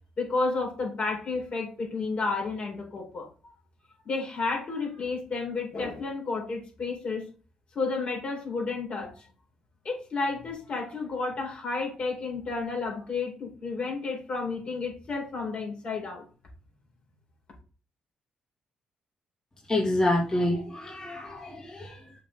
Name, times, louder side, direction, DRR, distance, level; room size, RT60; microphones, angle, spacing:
voice 1, 0.2-3.5 4.0-7.3 7.7-9.2 9.8-16.2, left 3 dB, 55° left, 0 dB, 4.4 m, -31 dB
voice 2, 19.7-22.2, left 1 dB, 30° left, -2 dB, 2.4 m, -28 dB
6.9 x 5.2 x 3.8 m, 0.36 s
supercardioid pair, 60°, 2 cm